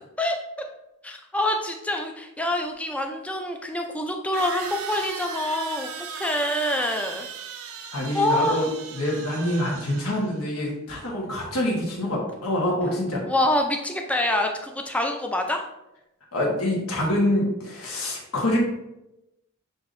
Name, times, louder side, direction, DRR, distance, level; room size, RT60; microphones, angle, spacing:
voice 1, 1.0-5.9 6.2-7.3 8.1-8.6 13.3-15.6, left 1 dB, 5° left, 3 dB, 0.3 m, -26 dB
sound 1, 2.7-2.8 4.3-10.4, right 6 dB, 70° right, 0.5 m, -37 dB
voice 2, 7.9-8.7 8.9-13.2 16.3-18.6, left 1 dB, 80° left, -2 dB, 1.2 m, -26 dB
6.7 x 2.7 x 2.5 m, 0.91 s
head